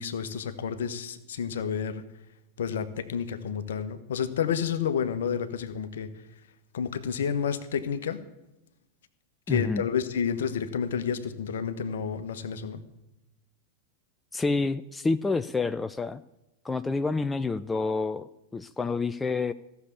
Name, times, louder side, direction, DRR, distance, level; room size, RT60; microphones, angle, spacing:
voice 1, 0.0-2.0 2.6-6.1 6.7-8.2 9.5-12.8, left 7 dB, 60° left, 11 dB, 1.1 m, -30 dB
voice 2, 9.5-9.9 14.3-16.2 16.6-19.5, left 3 dB, 10° left, 12 dB, 0.4 m, -28 dB
15.0 x 7.0 x 8.4 m, 0.93 s
figure-of-eight pair, 90°, 0 cm